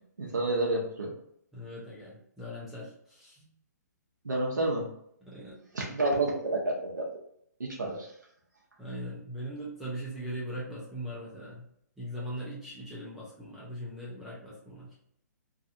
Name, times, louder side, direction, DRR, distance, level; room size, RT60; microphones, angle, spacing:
voice 1, 0.2-1.1 4.2-4.9 5.7-7.1 7.6-8.1, right 2 dB, 90° right, -2 dB, 0.6 m, -29 dB
voice 2, 1.5-3.4 5.2-5.6 7.8-8.0 8.8-11.6 12.0-14.9, equal, ahead, -8 dB, 0.6 m, -40 dB
2.7 x 2.3 x 2.5 m, 0.71 s
hypercardioid pair, 135°, 10 cm